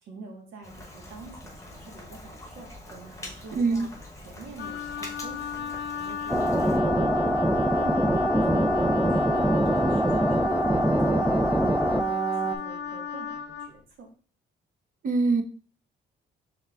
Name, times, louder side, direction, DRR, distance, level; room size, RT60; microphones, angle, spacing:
voice 1, 0.0-7.1 7.4-8.1 8.4-14.1, right 3 dB, 80° right, 1 dB, 1.4 m, -46 dB
Rain, 0.6-6.8, left 1 dB, 15° left, 0.9 m, -44 dB
voice 2, 3.6-3.9 15.0-15.4, right 3 dB, 45° right, 6 dB, 0.6 m, -23 dB
Wind instrument woodwind instrument, 4.6-13.7, left 7 dB, 60° left, 0.5 m, -35 dB
sound 1, 6.3-12.6, right 1 dB, ahead, 0.3 m, -23 dB
5.4 x 3.4 x 2.3 m, 0.41 s
cardioid pair, 90°, 20 cm